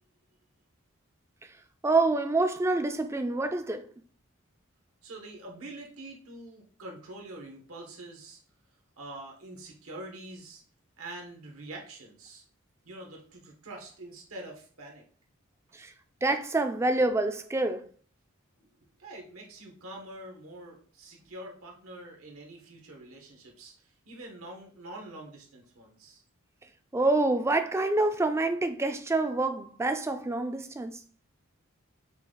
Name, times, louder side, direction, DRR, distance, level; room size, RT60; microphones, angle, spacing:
voice 1, 1.8-3.9 15.7-15.9 16.2-17.9 26.9-31.0, right 2 dB, 15° right, 0.3 m, -27 dB
voice 2, 5.0-8.4 9.0-10.6 11.0-12.4 12.8-15.0 18.6-18.7 19.0-26.2, right 2 dB, 90° right, 1.3 m, -45 dB
5.7 x 2.4 x 3.8 m
head